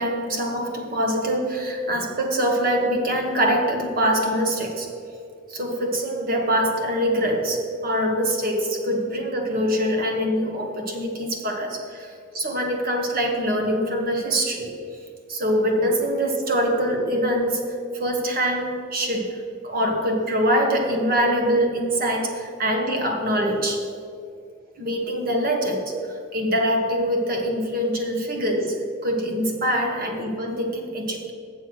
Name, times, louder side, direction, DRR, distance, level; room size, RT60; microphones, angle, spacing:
voice 1, 0.0-4.9 5.5-12.1 12.3-14.7 15.3-17.7 18.0-23.8 24.8-25.9 26.3-31.3, equal, 55° right, 2 dB, 1.4 m, -24 dB
7.6 x 7.2 x 6.3 m, 2.5 s
head